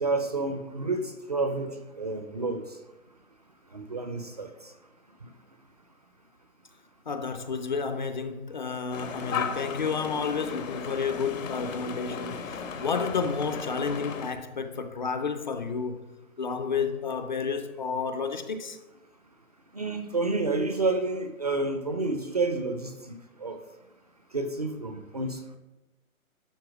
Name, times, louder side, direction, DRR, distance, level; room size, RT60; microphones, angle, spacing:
voice 1, 0.0-2.6 3.7-4.5 19.7-22.9 23.4-23.6 24.3-25.4, right 3 dB, 30° right, 0.4 m, -29 dB
voice 2, 7.1-16.0 16.4-18.8, left 5 dB, 35° left, 0.5 m, -31 dB
sound 1, 8.9-14.3, left 6 dB, 65° left, 1.2 m, -36 dB
12.0 x 4.3 x 6.0 m
hypercardioid pair, 150°, 42 cm